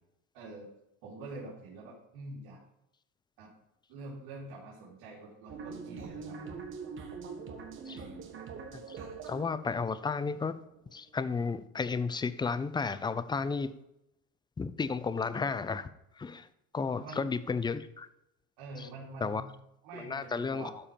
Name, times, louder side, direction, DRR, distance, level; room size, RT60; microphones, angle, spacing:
voice 1, 0.3-0.7 1.0-2.6 3.4-3.5 3.9-6.6 7.8-8.3 17.0-17.3 18.6-19.4 19.8-20.7, right 2 dB, 80° right, -5 dB, 2.9 m, -46 dB
sound 1, 5.5-11.3, right 5 dB, 40° right, 1.6 m, -44 dB
voice 2, 9.3-10.6 10.9-13.7 14.6-15.9 16.2-16.5 16.7-18.1 18.8-18.9 19.2-19.4 19.9-20.7, left 4 dB, 15° left, 13 dB, 0.5 m, -33 dB
12.5 x 4.4 x 5.2 m, 0.85 s
cardioid pair, 125°, 32 cm